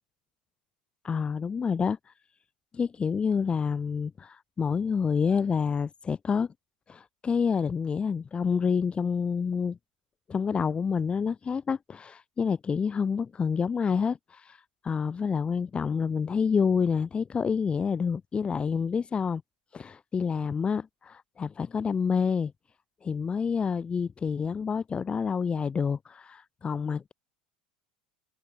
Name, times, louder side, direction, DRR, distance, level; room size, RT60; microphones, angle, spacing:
voice 1, 1.0-2.1 2.7-6.5 6.9-9.8 10.3-19.4 19.7-22.5 23.0-27.1, left 6 dB, 25° left, 1.0 m, -28 dB
hypercardioid pair, 80°, 4 cm